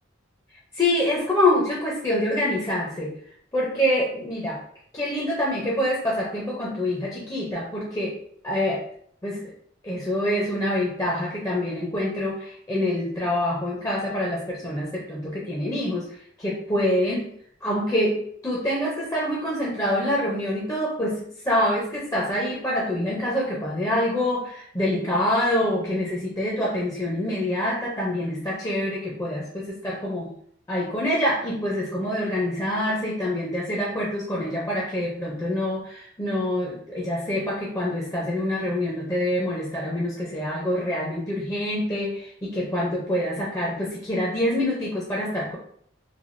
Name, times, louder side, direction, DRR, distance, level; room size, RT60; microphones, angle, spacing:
voice 1, 0.7-3.1 3.5-4.6 4.9-8.2 8.4-8.9 9.2-9.5 9.8-17.3 17.6-30.3 30.7-45.6, left 1 dB, 15° left, -4 dB, 0.4 m, -26 dB
3.2 x 2.3 x 2.5 m, 0.63 s
head